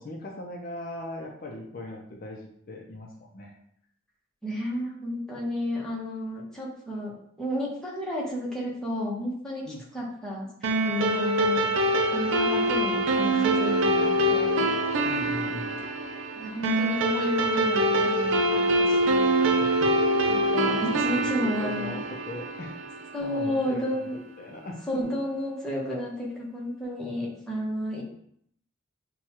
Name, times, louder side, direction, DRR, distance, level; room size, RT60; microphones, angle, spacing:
voice 1, 0.0-3.5 9.7-9.8 15.0-15.8 19.6-19.9 20.3-20.5 20.7-22.8 23.2-25.0, left 1 dB, 45° left, 0 dB, 0.5 m, -39 dB
voice 2, 4.4-7.1 7.4-9.7 9.9-14.7 16.4-19.5 20.3-22.0 23.1-24.2 24.9-28.0, left 1 dB, 5° left, -5 dB, 0.9 m, -32 dB
sound 1, 10.6-23.4, right 1 dB, 70° right, 0.5 m, -24 dB
6.1 x 2.3 x 2.9 m, 0.69 s
head